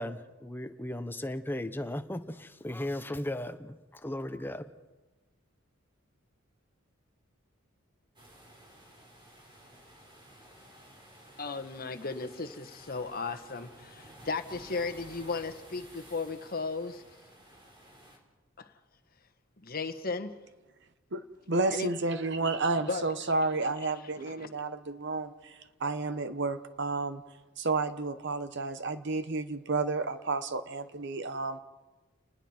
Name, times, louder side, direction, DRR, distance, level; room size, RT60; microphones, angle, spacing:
voice 1, 0.0-4.7, left 1 dB, 10° left, 9 dB, 0.8 m, -36 dB
sound 1, 8.2-18.2, right 1 dB, 25° right, 3.5 m, -54 dB
voice 2, 11.4-17.0 18.6-18.7 19.6-20.3 21.7-21.9 22.4-22.5 22.9-23.1 23.8-23.9 24.2-24.5, left 4 dB, 45° left, 8 dB, 1.3 m, -35 dB
voice 3, 21.1-27.2 27.6-31.6, right 3 dB, 55° right, 11 dB, 1.1 m, -31 dB
30.0 x 20.0 x 4.5 m, 1.2 s
head